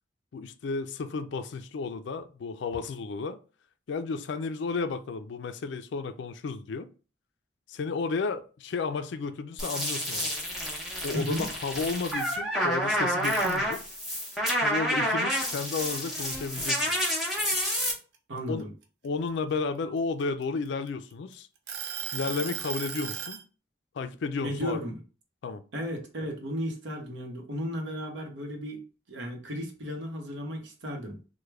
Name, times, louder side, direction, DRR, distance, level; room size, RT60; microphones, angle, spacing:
voice 1, 0.3-3.4 3.9-6.9 7.7-10.3 11.0-13.9 14.6-17.1 18.5-18.6 19.0-21.5 22.1-23.4 24.0-24.8 25.4-25.6, left 4 dB, 70° left, 0.3 m, -33 dB
sound 1, 9.6-17.9, equal, ahead, 0.7 m, -29 dB
voice 2, 11.1-11.5 18.3-18.7 24.4-25.0 25.7-31.2, equal, 85° right, 0.9 m, -34 dB
sound 2, 13.1-14.1 14.5-16.3 16.8-17.0 17.5-19.3 20.0-21.1 21.7-23.4, right 8 dB, 65° right, 0.5 m, -37 dB
3.2 x 2.1 x 3.4 m
head